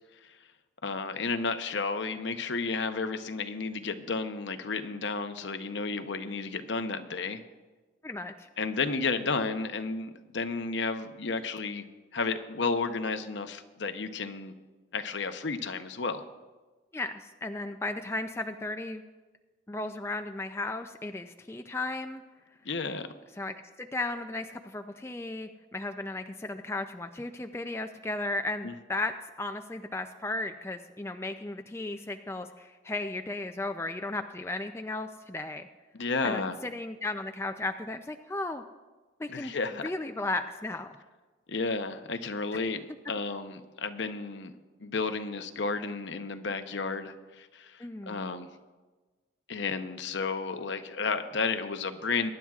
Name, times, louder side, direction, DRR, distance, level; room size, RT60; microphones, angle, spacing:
voice 1, 0.8-7.4 8.6-11.8 12.1-14.5 14.9-16.2 22.6-23.1 28.6-28.7 36.0-36.5 39.3-39.9 41.5-42.8 43.1-44.5 44.8-48.5 49.5-52.3, left 4 dB, 70° left, 8 dB, 0.7 m, -32 dB
voice 2, 8.0-8.5 16.9-19.0 19.7-22.2 23.4-35.7 36.2-38.6 39.2-39.6 39.8-41.0 47.8-48.3, left 2 dB, 15° left, 6 dB, 0.3 m, -35 dB
22.0 x 10.5 x 2.4 m, 1.3 s
head